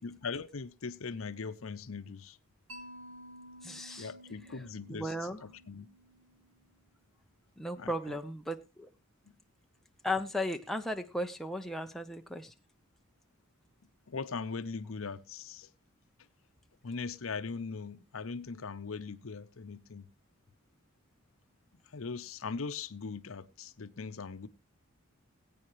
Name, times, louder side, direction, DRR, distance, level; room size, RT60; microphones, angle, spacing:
voice 1, 0.0-2.4 3.9-5.1 5.4-5.9 7.8-8.2 9.3-9.4 14.1-15.7 16.8-20.1 21.9-24.5, left 4 dB, 70° left, 0.7 m, -40 dB
Mallet percussion, 2.7-6.7, equal, 70° right, 4.0 m, -52 dB
voice 2, 3.6-4.1 4.5-4.6 4.9-5.4 7.6-8.9 10.0-12.5, left 1 dB, ahead, 0.7 m, -36 dB
20.5 x 8.7 x 3.0 m
head